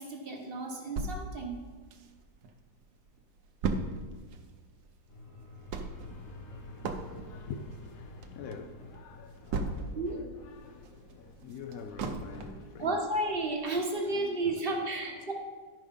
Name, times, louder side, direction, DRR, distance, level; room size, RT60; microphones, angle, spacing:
voice 1, 0.0-1.6 9.9-10.3 12.8-15.3, right 2 dB, 35° right, 1.1 m, -32 dB
sound 1, 1.0-2.5 2.9-3.0 3.2-10.2 10.6-12.7 13.2-13.3 13.7-13.8, right 3 dB, 65° right, 1.2 m, -37 dB
sound 2, 5.1-13.9, left 2 dB, 50° left, 1.2 m, -51 dB
voice 2, 7.1-13.0 13.8-14.9 15.2-15.3, left 6 dB, 75° left, 0.8 m, -46 dB
11.5 x 5.0 x 5.2 m
omnidirectional pair, 1.9 m